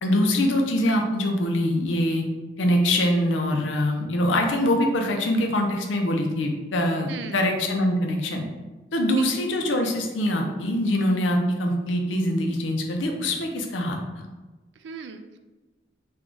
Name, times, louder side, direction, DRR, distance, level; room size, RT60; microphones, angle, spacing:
voice 1, 0.0-2.2 2.6-8.4 8.9-14.3, left 1 dB, 85° left, 2 dB, 0.6 m, -23 dB
voice 2, 7.1-7.5 9.2-9.3 14.8-15.4, right 5 dB, 70° right, 8 dB, 0.3 m, -38 dB
3.4 x 2.3 x 3.7 m, 1.2 s
head